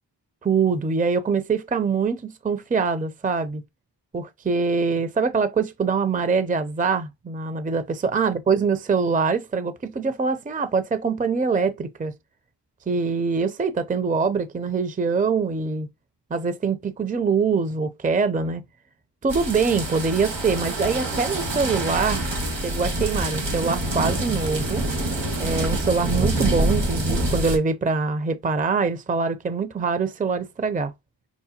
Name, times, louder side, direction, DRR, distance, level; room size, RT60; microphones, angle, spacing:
voice 1, 0.4-3.6 4.1-12.1 12.9-15.9 16.3-18.6 19.2-22.3 22.5-24.8 25.4-30.9, right 5 dB, 20° right, 0.5 m, -24 dB
sound 1, 19.3-27.6, right 1 dB, 70° right, 1.6 m, -26 dB
5.8 x 2.2 x 2.8 m
cardioid pair, 40°, 44 cm